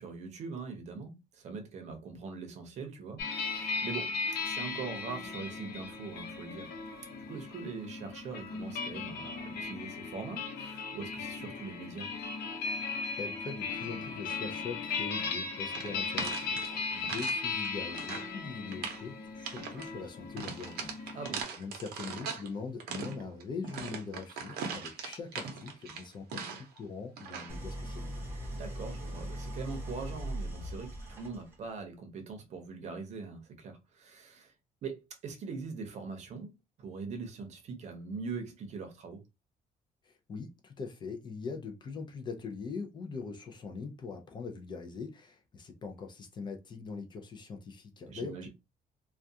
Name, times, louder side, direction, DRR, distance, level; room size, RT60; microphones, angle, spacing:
voice 1, 0.0-4.1 4.4-6.7 7.0-12.1 16.9-17.2 21.1-21.4 28.5-34.5 34.8-36.5 36.8-39.2 48.1-48.5, right 4 dB, 45° right, 0.7 m, -42 dB
sound 1, 3.2-21.4, left 4 dB, 85° left, 0.7 m, -37 dB
voice 2, 13.2-21.2 21.6-28.2 40.0-48.5, left 4 dB, 30° left, 0.4 m, -42 dB
sound 2, 15.7-17.4 17.7-18.3 18.7-19.1 19.4-19.9 20.4-22.5 22.8-26.8 27.2-27.6, right 5 dB, 85° right, 0.7 m, -40 dB
Idling, 27.5-31.7, right 1 dB, 15° right, 0.7 m, -40 dB
2.3 x 2.2 x 2.6 m
cardioid pair, 180°, 16 cm